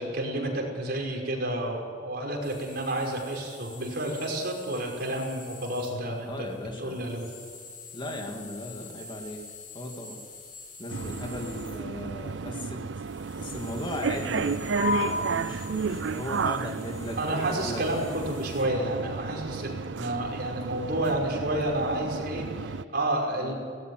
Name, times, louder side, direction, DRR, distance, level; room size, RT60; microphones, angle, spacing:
voice 1, 0.0-6.5 6.8-7.3 17.2-23.5, right 1 dB, 60° right, -1 dB, 5.6 m, -30 dB
sound 1, 2.4-18.6, left 4 dB, 50° left, 5.7 m, -48 dB
voice 2, 6.2-7.1 7.9-9.4 9.7-10.2 10.8-12.8 13.4-17.8 23.4-23.5, left 1 dB, 25° left, 2 dB, 2.5 m, -37 dB
sound 2, 10.9-22.8, right 5 dB, 75° right, 0.5 m, -33 dB
sound 3, 14.8-21.8, left 3 dB, 35° right, 5.2 m, -38 dB
18.5 x 17.0 x 9.6 m, 2.2 s
head